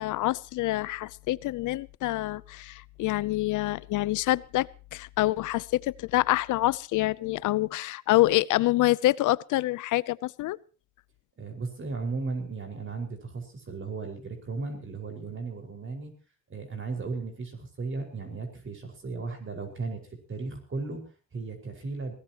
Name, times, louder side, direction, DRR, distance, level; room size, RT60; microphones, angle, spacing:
voice 1, 0.0-10.6, left 17 dB, 85° left, 0.7 m, -26 dB
voice 2, 11.4-16.1 16.5-20.0 20.3-22.2, right 3 dB, 40° right, 5.3 m, -35 dB
22.0 x 17.0 x 3.0 m
cardioid pair, 90°, 30 cm